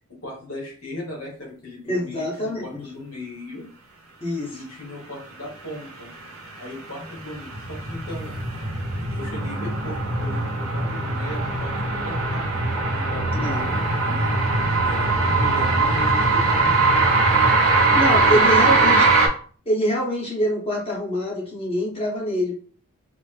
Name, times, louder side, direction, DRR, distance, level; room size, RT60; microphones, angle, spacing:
voice 1, 0.2-3.6 4.5-6.1 6.6-8.6 9.1-14.3 14.8-17.1 18.3-19.1, left 1 dB, 70° left, -3 dB, 1.4 m, -37 dB
voice 2, 1.8-2.8 4.2-4.6 13.3-13.8 17.9-19.1 19.6-22.6, equal, 25° left, -4 dB, 1.1 m, -25 dB
sound 1, 6.5-19.3, right 3 dB, 65° right, 0.8 m, -21 dB
4.1 x 2.2 x 3.3 m, 0.44 s
head